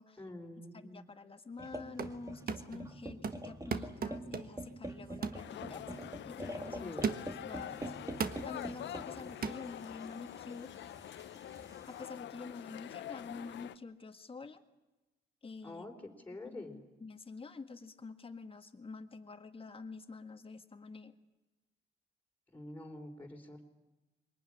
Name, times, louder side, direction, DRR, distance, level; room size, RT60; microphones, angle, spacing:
voice 1, 0.2-1.1 6.7-7.1 15.6-15.9 16.2-16.8 22.5-23.6, left 1 dB, 10° left, 0 dB, 4.1 m, -46 dB
voice 2, 0.7-5.8 6.2-6.9 7.4-7.9 8.4-10.7 11.9-14.6 15.4-15.9 16.4-21.2, left 4 dB, 30° left, 8 dB, 1.7 m, -48 dB
sound 1, 1.6-12.0, right 1 dB, 15° right, 2.2 m, -46 dB
sound 2, 1.7-2.2 2.5-2.9 3.2-4.7 5.2-5.5 6.0-6.1 7.0-7.5 8.2-8.5 9.4-9.6, right 6 dB, 50° right, 1.4 m, -37 dB
sound 3, 5.4-13.8, left 11 dB, 70° left, 0.8 m, -46 dB
23.5 x 18.5 x 9.9 m, 1.1 s
cardioid pair, 90°, 20 cm